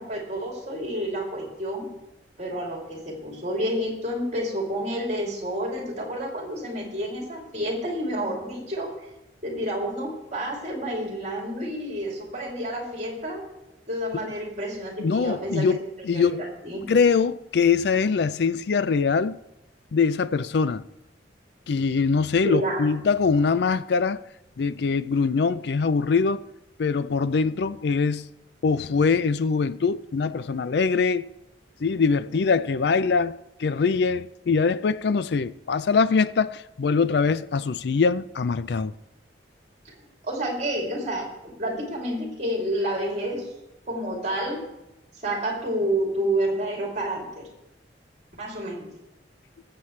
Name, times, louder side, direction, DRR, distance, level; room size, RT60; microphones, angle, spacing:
voice 1, 0.0-1.9 2.4-8.9 9.4-13.5 13.9-15.8 16.1-16.9 22.4-22.9 40.2-43.5 43.9-44.6 45.2-47.5 48.4-48.9, right 1 dB, 40° right, 2.9 m, -29 dB
voice 2, 15.0-16.5 16.9-19.4 19.9-20.8 21.7-24.2 24.6-26.4 26.8-28.2 28.6-31.3 31.8-38.9, left 5 dB, 65° left, 0.4 m, -23 dB
21.0 x 7.6 x 3.2 m
head